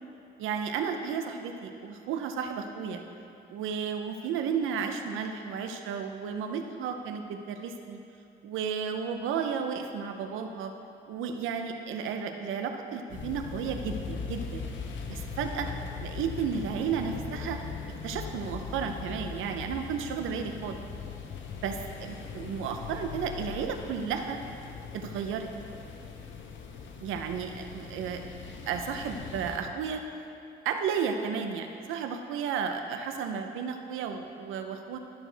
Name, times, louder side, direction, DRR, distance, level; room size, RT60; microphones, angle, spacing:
voice 1, 0.4-3.0 3.5-8.0 8.4-10.7 11.1-14.6 15.1-15.7 16.0-17.6 18.0-20.8 21.6-24.4 24.9-25.5 27.0-28.2 28.7-30.0 30.6-35.0, right 6 dB, 90° right, 6 dB, 0.7 m, -33 dB
sound 1, 13.1-29.6, left 5 dB, 70° left, 0.8 m, -40 dB
12.0 x 6.2 x 3.4 m, 2.6 s
cardioid pair, 90°, 20 cm